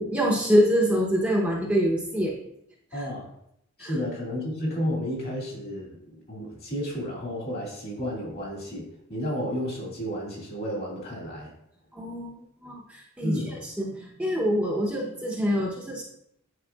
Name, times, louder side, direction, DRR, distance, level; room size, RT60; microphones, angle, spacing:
voice 1, 0.0-2.4 2.9-3.1 3.8-3.9 11.9-12.3 12.6-16.0, equal, 5° right, -3 dB, 0.8 m, -25 dB
voice 2, 2.9-3.3 3.8-11.5 13.2-13.6, equal, 45° left, -2 dB, 2.3 m, -32 dB
9.6 x 4.7 x 2.3 m, 0.74 s
head